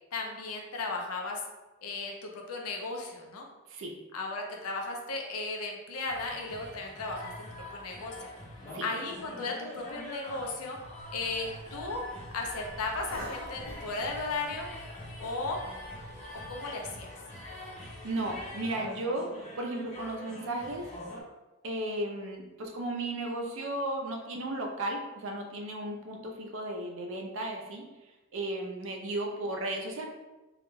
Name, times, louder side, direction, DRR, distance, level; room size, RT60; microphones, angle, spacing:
voice 1, 0.1-1.4 1.8-3.5 4.1-8.2 8.8-10.8 11.1-12.1 12.3-14.7 15.2-15.6 16.3-17.1, left 3 dB, 85° left, 1 dB, 0.5 m, -35 dB
sound 1, 6.1-21.2, left 1 dB, 30° left, 0.6 m, -44 dB
Cough, 11.0-16.5, equal, 5° left, 0.8 m, -50 dB
voice 2, 17.7-19.3 19.6-20.9 21.6-27.8 28.3-30.1, right 1 dB, 60° right, 2 dB, 0.4 m, -35 dB
2.3 x 2.1 x 3.0 m, 1.1 s
head